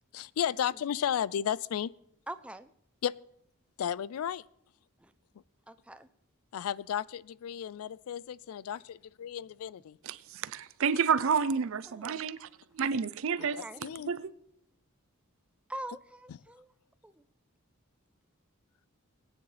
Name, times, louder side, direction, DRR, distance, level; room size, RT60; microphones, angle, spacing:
voice 1, 0.1-1.9 3.0-3.1 3.8-4.4 6.5-10.0 13.4-13.5 13.8-14.1, left 9 dB, 80° left, 0.3 m, -33 dB
voice 2, 2.3-2.7 5.0-5.1 5.7-6.1 11.9-12.2 13.4-13.8 15.7-16.7 17.0-17.2, right 1 dB, 5° right, 0.4 m, -44 dB
voice 3, 10.0-12.5 12.7-14.3, right 6 dB, 65° right, 0.5 m, -30 dB
19.0 x 9.4 x 3.3 m
head